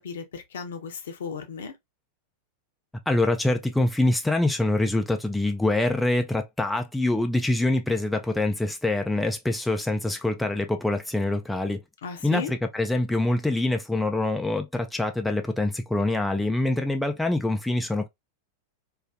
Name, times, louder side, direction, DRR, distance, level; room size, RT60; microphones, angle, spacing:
voice 1, 0.0-1.8 12.0-12.5, left 5 dB, 60° left, 0.6 m, -35 dB
voice 2, 3.1-11.8 12.2-18.1, left 2 dB, 5° left, 0.3 m, -25 dB
2.4 x 2.3 x 2.2 m
figure-of-eight pair, 90°, 0 cm